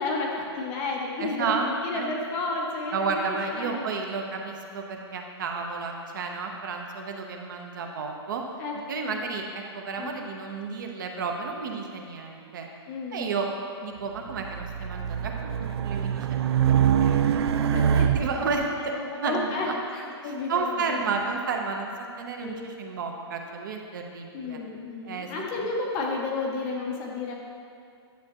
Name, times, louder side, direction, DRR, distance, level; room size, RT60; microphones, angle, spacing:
voice 1, 0.0-3.8 8.6-8.7 9.0-9.2 10.0-10.2 12.9-13.3 17.7-18.0 18.5-21.0 22.4-22.7 24.3-27.3, left 3 dB, 20° left, -1 dB, 0.7 m, -32 dB
voice 2, 1.2-1.7 1.9-2.1 2.9-8.4 8.9-12.7 13.1-13.5 13.8-15.3 15.6-17.8 18.1-19.7 20.2-21.9 22.2-24.6 25.0-25.3, right 4 dB, 45° right, 2 dB, 0.9 m, -32 dB
Race car auto racing, 14.3-18.6, right 8 dB, 70° right, 0.4 m, -24 dB
10.5 x 7.4 x 3.0 m, 2.4 s
hypercardioid pair, 175°, 14 cm